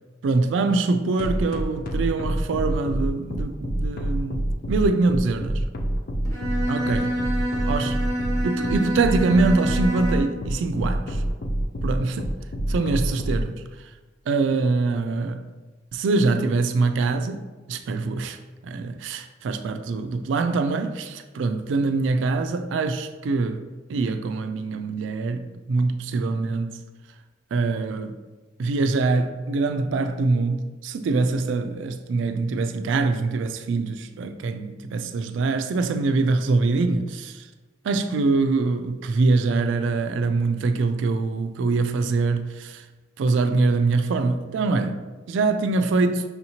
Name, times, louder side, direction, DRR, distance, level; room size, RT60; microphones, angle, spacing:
voice 1, 0.2-5.6 6.7-7.2 7.7-8.0 8.4-11.2 11.8-12.3 12.7-13.6 14.3-15.4 15.9-17.4 17.7-18.4 18.6-26.8 27.5-28.2 28.6-37.5 37.8-42.8 43.2-46.2, right 3 dB, 70° right, 0.3 m, -24 dB
sound 1, 1.2-13.4, right 1 dB, 50° left, 0.4 m, -26 dB
Bowed string instrument, 6.2-10.4, equal, 20° left, 0.8 m, -27 dB
5.5 x 2.7 x 2.9 m
head